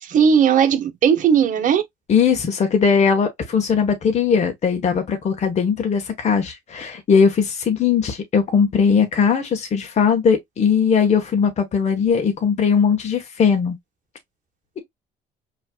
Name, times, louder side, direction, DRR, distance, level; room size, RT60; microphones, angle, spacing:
voice 1, 0.0-1.8, right 7 dB, 50° right, 1.3 m, -17 dB
voice 2, 2.1-13.8, left 6 dB, 40° left, 1.4 m, -19 dB
5.6 x 3.2 x 2.3 m
cardioid pair, 110°, 17 cm